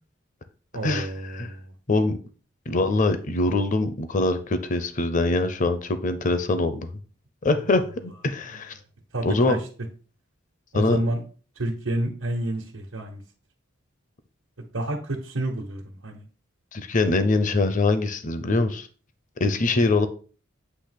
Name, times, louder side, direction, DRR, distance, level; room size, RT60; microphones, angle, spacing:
voice 1, 0.7-1.7 7.7-7.9 8.5-8.6 9.1-9.6 10.7-11.2 11.5-13.2 14.7-16.3 19.8-19.9, right 1 dB, 90° right, -2 dB, 1.2 m, -29 dB
voice 2, 2.7-6.9 7.4-8.7 9.2-9.6 10.7-11.0 16.7-18.9 19.4-20.1, left 2 dB, 40° left, 10 dB, 0.7 m, -23 dB
8.5 x 2.9 x 5.8 m, 0.38 s
head